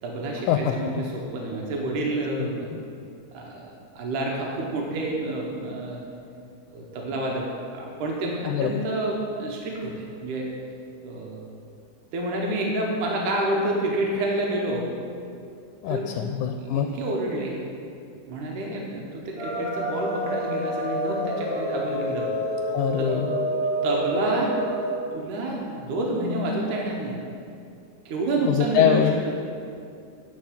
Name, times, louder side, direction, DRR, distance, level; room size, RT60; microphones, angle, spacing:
voice 1, 0.0-2.7 3.3-3.7 4.0-6.0 6.7-7.5 7.7-10.5 11.0-11.4 12.1-14.9 15.9-16.2 16.6-17.6 18.3-22.3 23.0-23.1 23.8-24.6 25.1-27.2 28.1-29.3, right 2 dB, 90° right, -1 dB, 2.5 m, -28 dB
voice 2, 15.8-16.9 22.7-23.4 28.5-29.1, left 10 dB, 85° left, 5 dB, 2.0 m, -23 dB
sound 1, 19.3-25.0, equal, 70° right, 3.9 m, -28 dB
10.5 x 4.4 x 7.3 m, 2.4 s
omnidirectional pair, 3.5 m